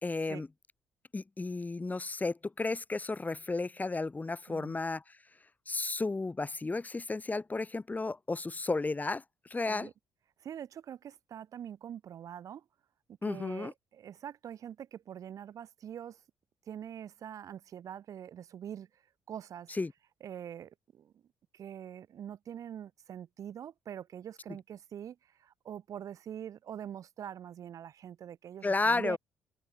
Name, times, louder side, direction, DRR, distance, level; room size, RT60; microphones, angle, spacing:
voice 1, 0.0-0.5 1.1-5.0 5.7-9.2 9.5-9.9 13.2-13.7 19.8-19.9 28.6-29.2, left 3 dB, 25° left, 2.6 m, -33 dB
voice 2, 4.5-4.8 9.7-9.9 10.4-12.6 13.2-16.2 16.7-19.0 19.3-19.7 20.2-21.1 21.5-29.2, right 9 dB, 60° right, 2.8 m, -44 dB
open air
hypercardioid pair, 45°, 7 cm